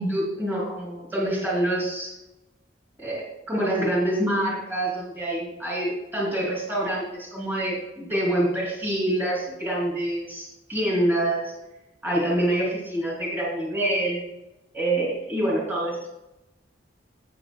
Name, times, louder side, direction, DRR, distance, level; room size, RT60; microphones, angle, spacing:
voice 1, 0.0-2.1 3.0-11.5 12.0-14.2 14.7-16.0, right 1 dB, 10° right, -5 dB, 3.1 m, -26 dB
12.0 x 9.0 x 2.3 m, 0.96 s
head